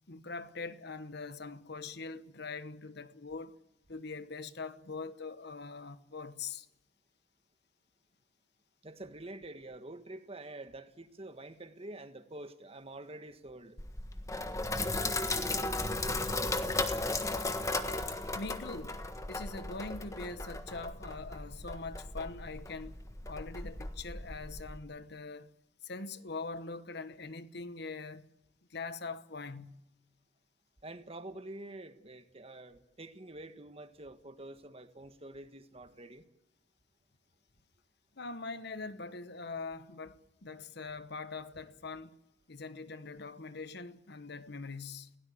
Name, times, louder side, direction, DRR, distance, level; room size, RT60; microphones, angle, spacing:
voice 1, 0.1-3.6 3.9-6.7 18.3-25.5 25.8-28.3 28.7-29.9 38.1-42.2 42.5-45.2, left 4 dB, 55° left, 1.1 m, -43 dB
voice 2, 8.8-13.8 30.8-36.3, right 2 dB, 30° right, 1.5 m, -47 dB
Sink (filling or washing), 13.8-24.8, left 2 dB, 15° left, 1.4 m, -36 dB
30.0 x 17.5 x 8.5 m
head